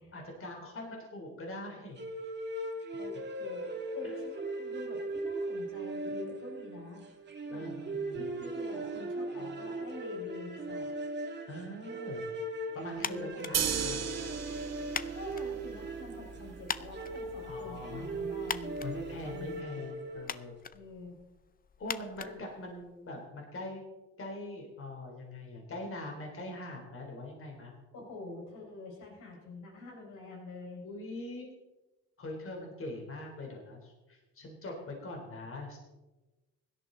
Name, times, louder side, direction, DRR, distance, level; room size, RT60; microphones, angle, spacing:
voice 1, 0.1-2.0 4.0-4.2 7.5-8.3 9.4-9.6 11.5-12.2 12.7-14.1 17.4-18.3 18.8-20.5 21.8-23.8 24.2-27.7 30.8-31.5 32.2-35.8, left 2 dB, 45° left, 1 dB, 3.6 m, -42 dB
sound 1, 2.0-20.5, right 2 dB, 35° right, 1.9 m, -39 dB
voice 2, 3.0-7.0 7.5-10.9 13.0-13.5 15.1-18.8 19.2-19.6 20.7-21.2 22.2-22.4 27.9-30.8, left 2 dB, 85° left, 0 dB, 5.2 m, -46 dB
sound 2, 13.0-23.2, left 7 dB, 30° left, 0.5 m, -44 dB
sound 3, 13.5-19.6, right 8 dB, 60° right, 1.2 m, -38 dB
17.0 x 11.5 x 3.9 m, 1.1 s
cardioid pair, 90°, 30 cm